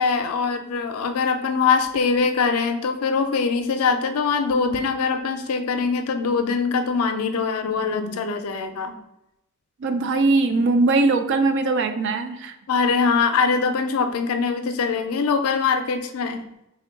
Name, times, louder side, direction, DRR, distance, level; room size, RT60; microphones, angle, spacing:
voice 1, 0.0-8.9 12.7-16.4, left 5 dB, 85° left, 7 dB, 0.4 m, -22 dB
voice 2, 9.8-12.5, right 3 dB, 55° right, 8 dB, 0.3 m, -20 dB
3.5 x 2.2 x 4.4 m, 0.87 s
head